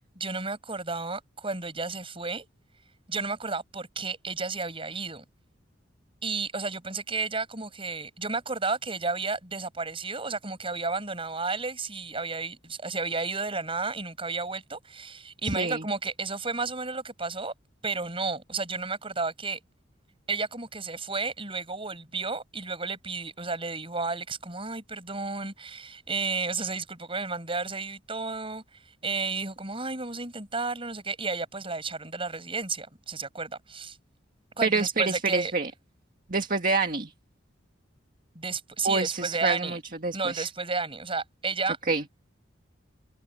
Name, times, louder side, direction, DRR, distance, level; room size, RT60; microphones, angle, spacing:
voice 1, 0.2-2.5 3.1-5.2 6.2-17.5 17.8-19.6 20.3-28.6 29.0-34.0 34.6-35.5 38.3-39.8 40.1-41.8, right 4 dB, 30° right, 8.0 m, -32 dB
voice 2, 34.6-35.7 36.3-37.1 38.8-40.5 41.9-42.0, right 4 dB, 45° right, 1.9 m, -27 dB
head